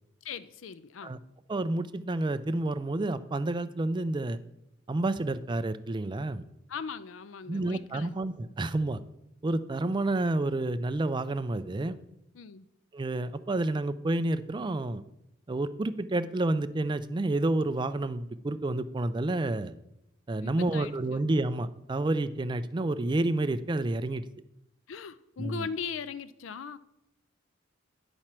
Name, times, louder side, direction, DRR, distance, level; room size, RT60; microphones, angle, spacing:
voice 1, 0.2-1.1 6.7-8.1 12.3-12.7 20.4-21.3 24.9-26.8, left 6 dB, 75° left, 15 dB, 0.4 m, -39 dB
voice 2, 1.5-4.4 4.9-6.4 7.5-9.0 9.4-12.0 12.9-15.0 15.5-19.7 20.3-24.2 25.4-25.7, right 2 dB, 25° right, 12 dB, 0.4 m, -29 dB
10.0 x 4.4 x 6.0 m, 0.84 s
head